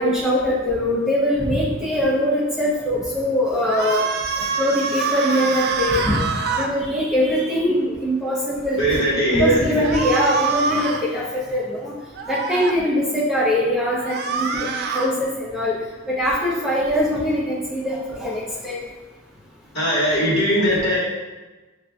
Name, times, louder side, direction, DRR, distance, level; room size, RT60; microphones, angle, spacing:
voice 1, 0.0-4.1 4.4-6.2 6.6-8.8 9.3-11.9 12.3-14.7 14.9-15.8 16.1-18.8, equal, ahead, -8 dB, 0.6 m, -22 dB
sound 1, 3.6-6.7 9.8-11.0 12.2-12.7 13.9-15.1, right 5 dB, 45° right, 0.3 m, -25 dB
voice 2, 8.8-9.9 19.7-21.0, equal, 50° left, -6 dB, 1.4 m, -19 dB
7.3 x 2.5 x 2.2 m, 1.2 s
head